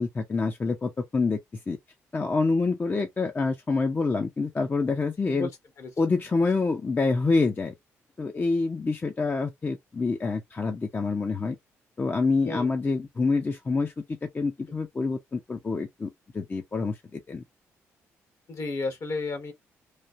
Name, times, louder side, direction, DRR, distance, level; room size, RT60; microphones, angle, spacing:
voice 1, 0.0-1.4 1.7-1.8 2.1-5.5 6.0-7.7 8.2-11.6 12.0-17.4, left 3 dB, 30° left, 0.7 m, -27 dB
voice 2, 12.4-12.8 18.5-19.5, left 3 dB, 55° left, 1.4 m, -32 dB
3.2 x 2.3 x 2.6 m
supercardioid pair, 55°, 6 cm